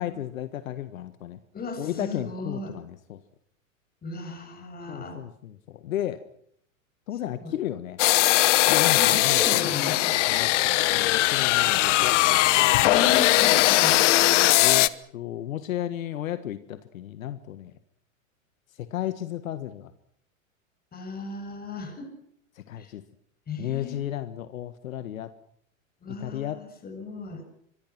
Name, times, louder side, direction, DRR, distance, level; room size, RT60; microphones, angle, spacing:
voice 1, 0.0-1.4 1.8-3.2 4.9-6.2 7.1-8.0 8.7-9.7 10.3-12.8 13.4-13.6 14.6-17.7 18.8-19.9 22.5-23.0 23.6-25.3 26.1-26.6, left 12 dB, 75° left, 11 dB, 1.7 m, -34 dB
voice 2, 1.5-2.7 4.0-5.2 7.4-7.5 9.0-10.2 12.8-14.0 20.9-22.1 22.8-22.9 23.5-24.0 26.0-27.4, left 3 dB, 20° left, 6 dB, 7.5 m, -35 dB
sound 1, 8.0-14.9, left 17 dB, 60° left, 1.1 m, -20 dB
25.5 x 23.5 x 6.1 m, 0.67 s
hypercardioid pair, 110°, 41 cm